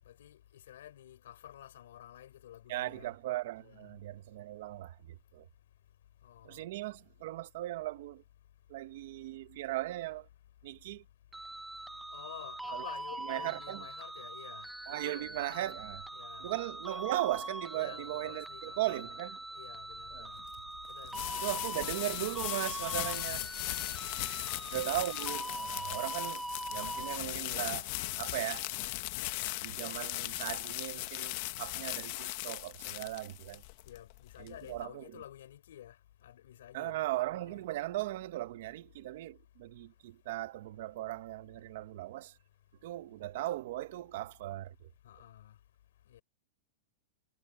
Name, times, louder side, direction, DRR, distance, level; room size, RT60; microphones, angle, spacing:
voice 1, 0.1-3.1 3.6-3.9 6.2-6.6 12.1-15.7 16.1-16.5 17.7-19.1 19.5-20.4 20.9-21.7 23.1-23.4 24.3-24.9 33.9-36.0 36.2-37.0 37.3-37.6 45.0-45.5 46.1-46.2, left 12 dB, 75° left, 6.3 m, -51 dB
voice 2, 2.7-5.5 6.4-8.2 8.7-10.3 10.6-11.0 12.7-12.9 13.3-13.8 14.9-16.0 16.4-19.4 20.1-20.3 21.3-23.8 24.2-26.4 26.7-27.9 28.2-28.7 29.6-33.6 34.4-35.0 36.7-42.4 42.8-44.9, right 16 dB, 50° right, 1.0 m, -38 dB
sound 1, 11.3-27.2, right 1 dB, 5° right, 0.6 m, -42 dB
sound 2, 19.9-34.8, left 20 dB, 40° left, 0.8 m, -38 dB
supercardioid pair, 170°, 0 cm